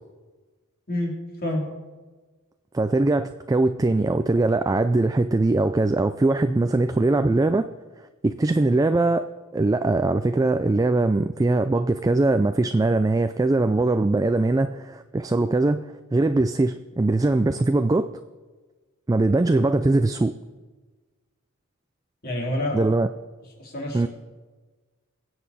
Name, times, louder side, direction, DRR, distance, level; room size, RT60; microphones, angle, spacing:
voice 1, 2.7-7.7 8.2-15.8 16.1-18.1 19.1-20.3 22.7-23.1 23.9-24.1, right 2 dB, 15° right, 9 dB, 0.3 m, -21 dB
voice 2, 22.2-22.8 23.6-24.1, left 1 dB, 45° left, -1 dB, 3.0 m, -27 dB
22.5 x 7.9 x 4.1 m, 1.3 s
head